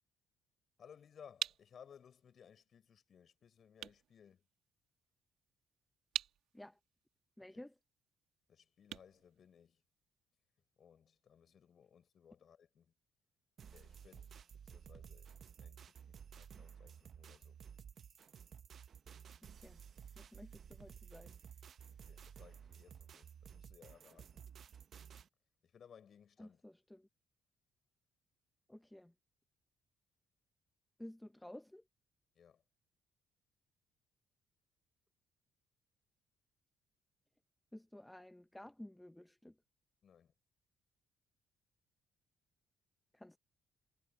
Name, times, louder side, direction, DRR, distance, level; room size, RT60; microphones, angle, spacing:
voice 1, 0.8-4.4 7.5-7.6 8.5-9.8 10.8-12.9 13.7-14.3 14.6-15.3 15.6-17.6 22.0-24.4 25.6-26.6 32.4-32.6 40.0-40.3, left 7 dB, 55° left, 6.3 m, -62 dB
sound 1, 0.8-10.2, right 11 dB, 75° right, 2.1 m, -48 dB
voice 2, 7.4-7.7 19.6-19.8 20.2-21.3 26.4-27.1 28.7-29.1 31.0-31.8 37.7-39.6 43.1-43.4, left 1 dB, 5° left, 0.9 m, -53 dB
sound 2, 13.6-25.3, right 8 dB, 55° right, 0.8 m, -55 dB
cardioid pair, 80°, 0 cm